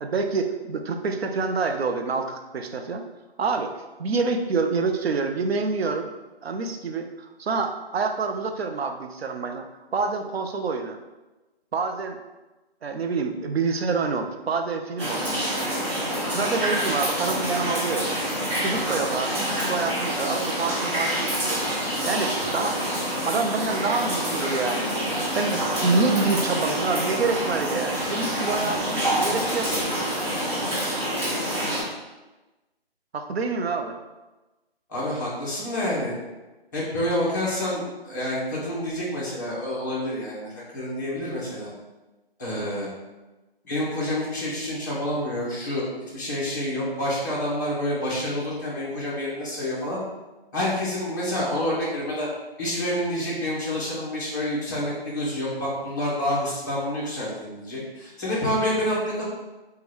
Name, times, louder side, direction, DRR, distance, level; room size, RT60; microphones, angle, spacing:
voice 1, 0.0-3.0 3.4-3.7 4.0-6.1 6.4-11.0 11.7-12.2 12.8-15.3 15.8-18.1 18.6-22.8 23.3-29.7 33.1-33.9, right 4 dB, 85° right, 6 dB, 0.5 m, -27 dB
sound 1, 15.0-31.8, equal, 30° right, 0.9 m, -27 dB
voice 2, 34.9-36.2 36.7-41.7 42.4-42.9 43.6-50.0 50.5-52.3 52.6-59.3, left 1 dB, 20° left, -7 dB, 0.6 m, -28 dB
3.6 x 2.2 x 3.0 m, 1.1 s
figure-of-eight pair, 150°, 31 cm